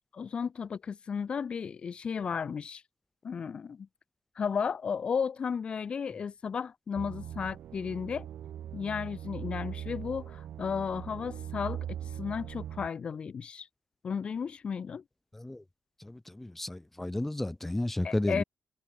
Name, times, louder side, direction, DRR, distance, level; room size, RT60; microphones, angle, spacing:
voice 1, 0.1-2.8 3.2-3.9 4.4-8.3 8.7-13.7 14.0-15.0 18.0-18.4, left 6 dB, 40° left, 0.6 m, -34 dB
sound 1, 6.9-12.9, right 10 dB, 75° right, 6.0 m, -40 dB
voice 2, 16.0-18.4, left 1 dB, 10° left, 1.0 m, -33 dB
wide cardioid pair, 165°, 3 cm